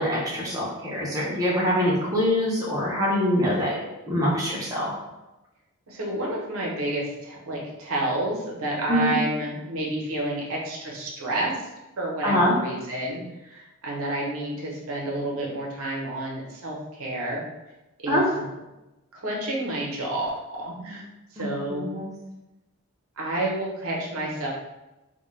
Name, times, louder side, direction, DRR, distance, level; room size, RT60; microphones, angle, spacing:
voice 1, 0.0-3.7 4.1-4.8 8.9-9.1 12.2-12.5 18.1-18.2 21.4-22.1, equal, 15° right, -6 dB, 0.4 m, -24 dB
voice 2, 5.9-11.7 12.0-17.4 18.0-18.4 19.1-20.3 20.6-21.1 21.3-21.9 23.2-24.5, right 1 dB, 70° right, -3 dB, 0.6 m, -30 dB
2.1 x 2.1 x 3.1 m, 1.0 s
head